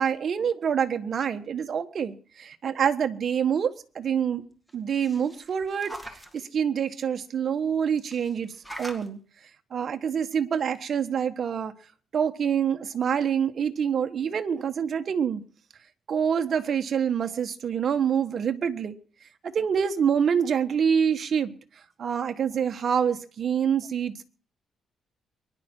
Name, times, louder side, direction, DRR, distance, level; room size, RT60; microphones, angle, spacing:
voice 1, 0.0-4.4 4.7-6.0 6.3-9.2 9.7-11.7 12.1-15.4 16.1-18.9 19.4-21.5 22.0-24.2, right 7 dB, 45° right, 8 dB, 1.3 m, -26 dB
sound 1, 4.7-6.4 8.0-9.1 10.3-10.4 10.7-10.8, right 1 dB, ahead, 2.1 m, -43 dB
23.5 x 11.0 x 4.5 m, 0.42 s
cardioid pair, 145°, 0 cm